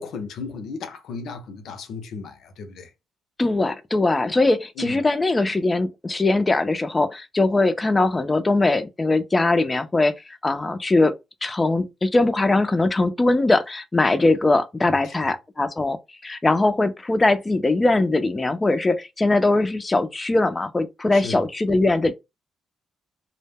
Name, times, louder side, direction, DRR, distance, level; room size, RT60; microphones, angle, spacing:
voice 1, 0.0-2.9 4.8-5.0 15.0-15.1 21.1-21.4, left 4 dB, 70° left, 0.5 m, -35 dB
voice 2, 3.4-11.1 11.4-16.0 16.2-22.1, left 2 dB, 20° left, 0.4 m, -21 dB
2.1 x 2.1 x 3.3 m
cardioid pair, 90°, 0 cm